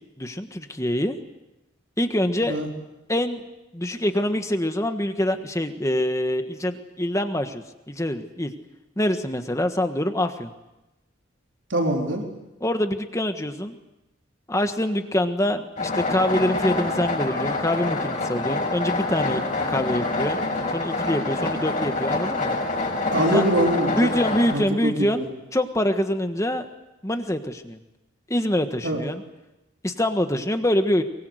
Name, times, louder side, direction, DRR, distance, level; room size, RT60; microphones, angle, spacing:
voice 1, 0.2-1.2 2.0-2.6 3.1-3.4 3.7-8.5 9.0-10.5 12.6-13.8 14.5-20.4 20.7-22.6 23.3-23.4 24.0-25.3 25.5-26.7 27.0-27.8 28.3-29.2 29.8-31.0, left 1 dB, 15° left, 7 dB, 1.5 m, -25 dB
voice 2, 11.7-12.2 23.1-24.1 24.5-25.2 28.8-29.0, right 1 dB, 75° right, 1 dB, 4.1 m, -23 dB
sound 1, 15.8-24.5, left 2 dB, 40° left, 6.1 m, -26 dB
23.5 x 23.0 x 8.1 m, 0.98 s
head